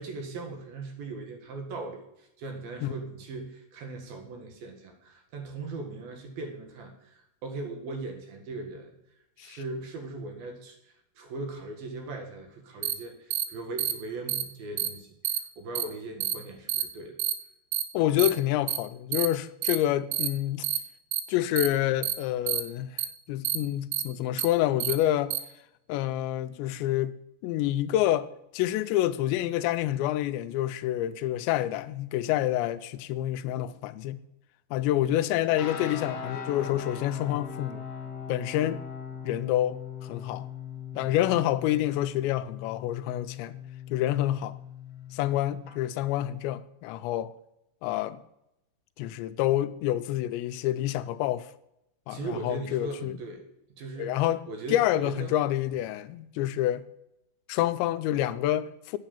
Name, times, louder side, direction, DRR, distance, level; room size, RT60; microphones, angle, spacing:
voice 1, 0.0-8.9 9.4-17.2 35.0-35.2 40.9-41.2 52.1-55.3, right 3 dB, 60° right, 3.1 m, -39 dB
sound 1, 12.8-12.9 13.3-13.4 13.8-13.9 14.3-14.4 14.8-14.9 15.2-15.4 15.8-15.9 16.2-16.3 16.7-16.8 17.2-17.3 17.7-17.8 18.2-18.3 18.7-18.8 19.1-19.3 19.6-19.8 20.1-20.3 20.6-20.8 21.1-21.2 21.6-21.7 22.0-22.1 22.5-22.6 23.0-23.1 23.4-23.6 23.9-24.0 24.4-24.5 24.8-24.9 25.3-25.4, right 12 dB, 85° right, 3.2 m, -28 dB
voice 2, 17.9-20.7 21.3-23.0 23.3-25.3 25.9-27.1 27.4-28.3 28.5-34.2 34.7-37.8 38.3-38.8 39.2-40.5 41.0-43.6 43.9-44.5 45.1-47.3 47.8-48.2 49.0-51.5 52.1-53.2 54.0-54.4 54.7-56.9 57.5-59.0, left 13 dB, 85° left, 2.7 m, -28 dB
sound 2, 35.5-45.7, left 7 dB, 55° left, 1.8 m, -40 dB
9.7 x 8.9 x 7.1 m
omnidirectional pair, 5.3 m